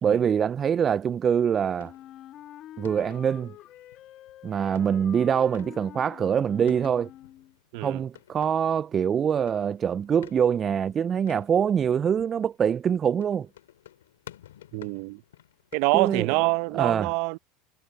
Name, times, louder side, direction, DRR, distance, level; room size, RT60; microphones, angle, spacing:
voice 1, 0.0-1.9 2.8-3.5 4.4-7.1 7.8-13.5 15.9-16.3 16.7-17.1, right 8 dB, 35° right, 0.3 m, -24 dB
sound 1, 1.2-16.6, left 12 dB, 85° left, 2.6 m, -52 dB
Wind instrument woodwind instrument, 1.8-7.5, left 12 dB, 50° left, 1.7 m, -47 dB
voice 2, 14.7-15.2 15.7-17.4, right 27 dB, 65° right, 0.8 m, -26 dB
hypercardioid pair, 85°, 0 cm